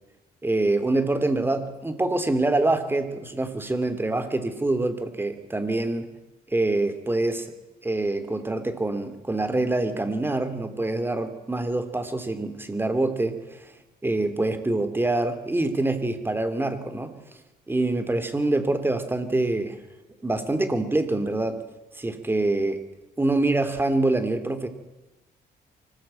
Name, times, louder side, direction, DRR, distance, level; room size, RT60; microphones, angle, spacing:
voice 1, 0.4-6.1 6.5-7.5 7.8-13.7 14.0-17.1 17.7-19.8 20.2-21.6 22.0-22.8 23.2-24.7, right 2 dB, 15° right, 9 dB, 3.0 m, -25 dB
24.5 x 20.0 x 9.0 m, 1.0 s
cardioid pair, 120°, 17 cm